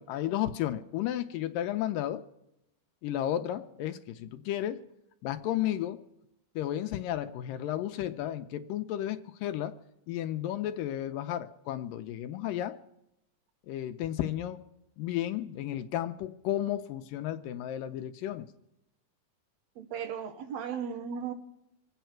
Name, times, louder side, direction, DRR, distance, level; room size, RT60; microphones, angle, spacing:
voice 1, 0.0-2.2 3.0-4.8 5.2-6.0 6.6-9.8 10.1-12.8 13.7-14.6 15.0-18.5, left 12 dB, 80° left, 9 dB, 2.2 m, -33 dB
voice 2, 19.8-21.3, right 7 dB, 70° right, 8 dB, 1.7 m, -36 dB
26.5 x 9.2 x 4.5 m, 0.88 s
omnidirectional pair, 4.4 m